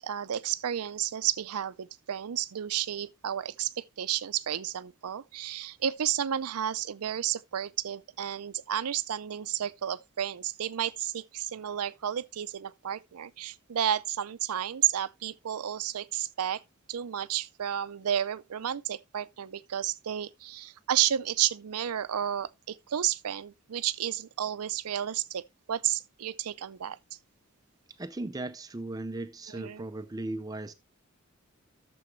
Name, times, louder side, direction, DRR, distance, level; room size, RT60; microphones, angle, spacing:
voice 1, 0.0-16.6 16.9-27.0 29.5-29.8, right 10 dB, 85° right, 0.5 m, -32 dB
voice 2, 28.0-30.7, right 2 dB, 15° right, 0.4 m, -37 dB
12.5 x 7.0 x 3.1 m
head